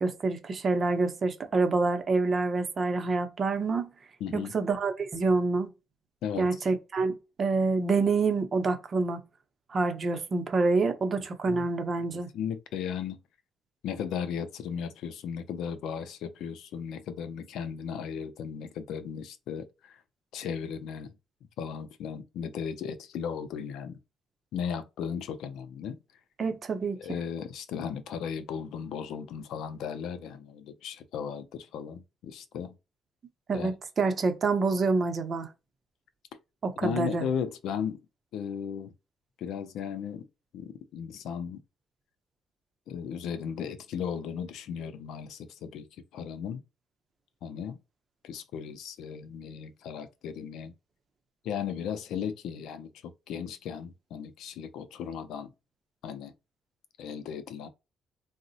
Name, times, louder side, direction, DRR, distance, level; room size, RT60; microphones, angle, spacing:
voice 1, 0.0-3.9 4.3-5.7 6.4-9.2 9.7-12.3 26.4-27.0 33.5-35.5 36.6-37.3, right 3 dB, 45° right, 0.6 m, -27 dB
voice 2, 4.2-4.6 6.2-6.6 11.5-11.7 12.3-13.2 13.8-20.0 20.3-21.1 21.6-24.0 24.5-26.0 27.0-32.7 33.5-33.7 36.8-38.0 38.3-38.9 39.4-40.2 40.5-41.6 42.9-45.9 46.1-46.6 47.4-47.8 48.2-50.7 51.4-52.9 53.3-55.5 56.0-56.3 57.0-57.7, left 7 dB, 85° left, 0.4 m, -36 dB
3.6 x 2.0 x 2.6 m
cardioid pair, 90°, 0 cm